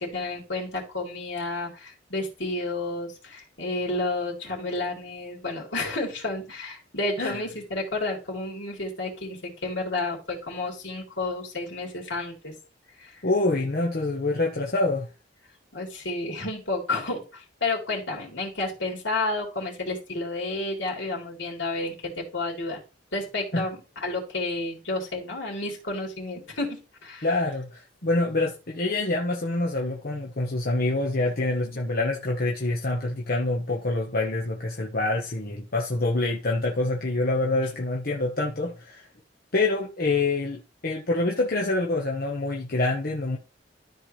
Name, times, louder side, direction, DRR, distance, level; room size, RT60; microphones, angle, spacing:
voice 1, 0.0-12.5 13.0-13.2 13.6-13.7 15.7-22.8 23.1-27.3, left 2 dB, 80° left, 3.8 m, -31 dB
voice 2, 13.2-15.1 23.5-23.6 27.2-39.0 39.5-43.4, left 2 dB, 50° left, 1.2 m, -26 dB
13.0 x 4.6 x 3.3 m
head